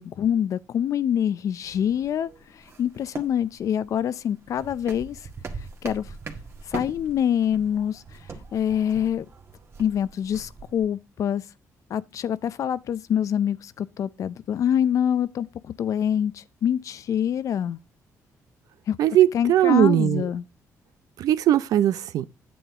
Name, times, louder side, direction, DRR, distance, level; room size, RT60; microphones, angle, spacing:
voice 1, 0.0-5.2 5.8-6.2 6.7-8.2 8.5-9.3 9.8-11.4 11.9-17.8 18.9-19.0 19.3-20.4, left 9 dB, 60° left, 0.5 m, -25 dB
sound 1, 1.6-10.9, right 4 dB, 45° right, 1.7 m, -42 dB
voice 2, 19.0-20.3 21.2-22.3, right 12 dB, 75° right, 0.6 m, -19 dB
9.3 x 7.9 x 3.7 m
cardioid pair, 100°, 6 cm